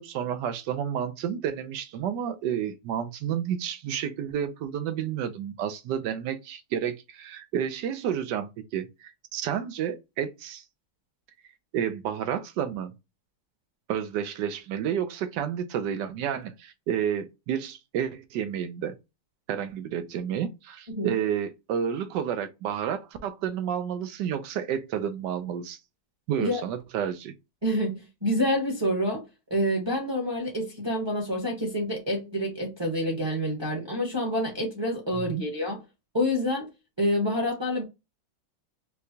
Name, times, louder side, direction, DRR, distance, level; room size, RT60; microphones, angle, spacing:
voice 1, 0.0-10.6 11.7-12.9 13.9-18.9 19.5-25.8 26.3-27.3 35.1-35.5, right 9 dB, 75° right, 1.2 m, -30 dB
voice 2, 27.6-29.2 29.5-35.8 36.1-36.7 37.0-37.8, equal, 20° right, 0.8 m, -27 dB
4.7 x 2.2 x 2.6 m
omnidirectional pair, 1.9 m